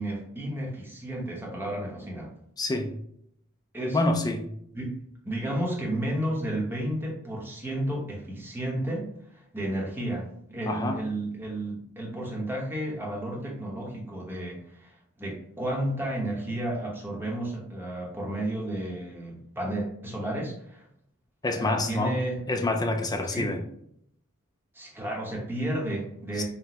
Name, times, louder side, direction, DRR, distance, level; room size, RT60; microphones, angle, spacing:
voice 1, 0.0-2.3 3.7-4.0 4.7-4.9 5.2-9.1 9.3-20.9 21.6-22.4 23.3-23.5 24.7-26.4, right 1 dB, 10° right, -3 dB, 0.9 m, -32 dB
voice 2, 2.6-2.9 3.9-4.5 10.7-11.0 21.4-22.2 22.5-23.6 26.4-26.5, left 2 dB, 20° left, 4 dB, 0.4 m, -27 dB
5.8 x 2.2 x 2.9 m, 0.72 s
head